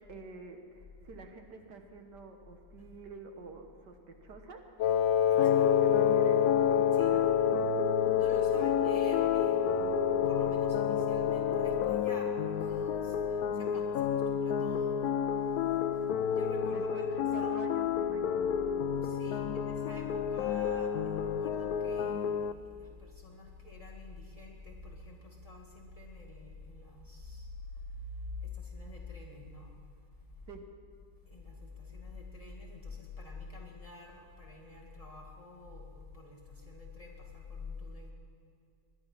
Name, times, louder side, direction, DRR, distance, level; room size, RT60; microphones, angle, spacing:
voice 1, 0.0-4.6 5.4-6.4 6.7-7.3 8.5-8.6 16.7-18.5 19.3-19.4 30.5-30.6, right 4 dB, 65° right, 5 dB, 1.7 m, -48 dB
Wind instrument woodwind instrument, 4.8-12.1, left 9 dB, 85° left, 1.3 m, -28 dB
voice 2, 5.3-5.9 6.9-7.1 8.1-9.6 10.1-15.2 16.3-17.7 18.9-27.5 27.7-29.7 31.3-38.1, left 2 dB, 20° left, -3 dB, 1.9 m, -47 dB
sound 1, 5.4-22.5, left 7 dB, 65° left, 0.9 m, -31 dB
20.5 x 11.5 x 5.9 m, 2.4 s
omnidirectional pair, 2.0 m